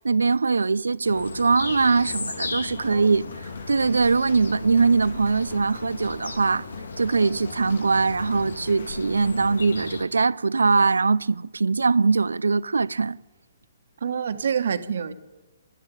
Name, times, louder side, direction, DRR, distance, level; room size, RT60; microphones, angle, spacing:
voice 1, 0.0-3.2 3.7-6.7 7.0-13.2, right 4 dB, 80° right, 0.6 m, -22 dB
sound 1, 1.0-10.0, left 3 dB, 80° left, 2.2 m, -36 dB
sound 2, 1.6-10.0, left 6 dB, 65° left, 2.9 m, -46 dB
voice 2, 2.8-3.2 14.0-15.1, right 7 dB, 65° right, 1.5 m, -27 dB
26.0 x 12.0 x 9.0 m
figure-of-eight pair, 130°, 0 cm